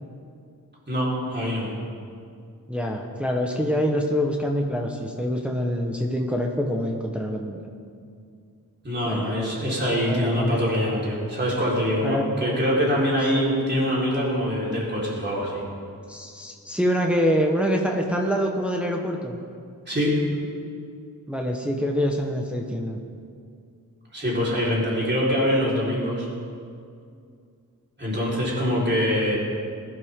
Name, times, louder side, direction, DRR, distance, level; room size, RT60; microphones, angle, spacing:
voice 1, 0.9-1.7 8.8-15.6 19.9-20.2 24.1-26.3 28.0-29.4, equal, 30° right, -6 dB, 4.4 m, -24 dB
voice 2, 2.7-7.6 9.1-9.5 10.0-10.6 12.0-12.3 16.1-19.4 21.3-23.0, equal, 5° right, 0 dB, 1.1 m, -25 dB
20.5 x 11.5 x 3.7 m, 2.3 s
wide cardioid pair, 110°, 35 cm